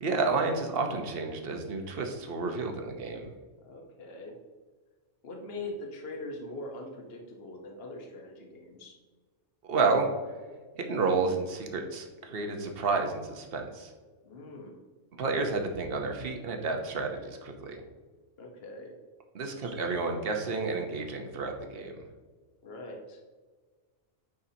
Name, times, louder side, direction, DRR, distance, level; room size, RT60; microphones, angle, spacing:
voice 1, 0.0-3.3 9.6-10.1 10.7-13.9 15.1-17.8 19.3-22.1, right 4 dB, 50° right, 3 dB, 1.1 m, -30 dB
voice 2, 3.6-4.4 5.2-9.0 14.2-14.8 18.4-18.9 22.6-23.2, left 2 dB, 55° left, 1 dB, 1.3 m, -42 dB
9.2 x 5.6 x 2.8 m, 1.4 s
omnidirectional pair, 1.3 m